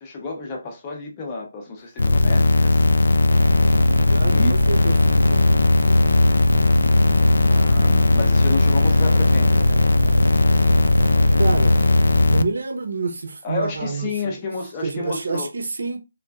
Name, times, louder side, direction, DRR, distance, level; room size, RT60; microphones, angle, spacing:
voice 1, 0.0-2.9 4.3-4.6 7.5-9.7 13.4-15.5, left 3 dB, 15° left, 0.6 m, -30 dB
sound 1, 2.0-12.4, left 2 dB, 90° left, 0.3 m, -17 dB
sound 2, 3.3-12.3, right 1 dB, 85° right, 0.4 m, -27 dB
voice 2, 4.0-6.4 11.4-11.8 12.3-14.4 14.8-16.0, right 4 dB, 60° right, 0.7 m, -28 dB
3.5 x 2.9 x 2.3 m
hypercardioid pair, 180°, 0 cm